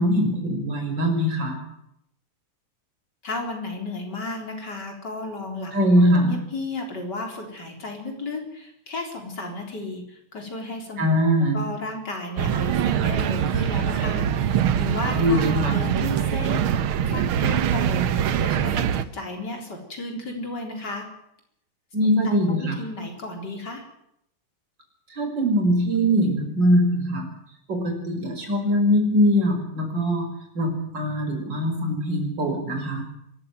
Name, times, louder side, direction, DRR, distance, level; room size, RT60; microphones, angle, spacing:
voice 1, 0.0-1.6 5.7-6.4 11.0-11.6 15.1-15.8 21.9-22.8 25.1-27.3 27.7-30.3 30.5-33.0, equal, 60° right, 3 dB, 6.1 m, -22 dB
voice 2, 3.2-5.7 6.0-11.0 11.5-16.7 17.0-18.1 18.4-21.1 22.2-23.8, left 2 dB, 55° left, 3 dB, 4.6 m, -33 dB
sound 1, 12.4-19.0, right 9 dB, 80° right, 1.8 m, -23 dB
24.0 x 14.5 x 9.1 m, 0.77 s
omnidirectional pair, 2.3 m